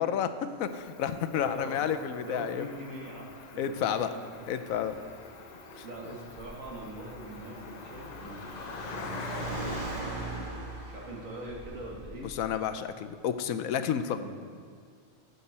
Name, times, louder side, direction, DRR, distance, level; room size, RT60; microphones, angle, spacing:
voice 1, 0.0-2.6 3.6-4.1 4.5-4.9 5.8-5.9 12.3-14.2, left 8 dB, 85° left, 10 dB, 1.0 m, -30 dB
Cricket, 0.7-10.0, left 5 dB, 60° left, 0.4 m, -46 dB
voice 2, 1.3-4.9 5.8-10.6 10.9-12.3 14.1-14.4, right 1 dB, 70° right, -2 dB, 2.1 m, -43 dB
Car, 4.5-12.5, right 2 dB, 40° right, 2.2 m, -41 dB
12.5 x 8.0 x 4.2 m, 2.1 s
omnidirectional pair, 1.4 m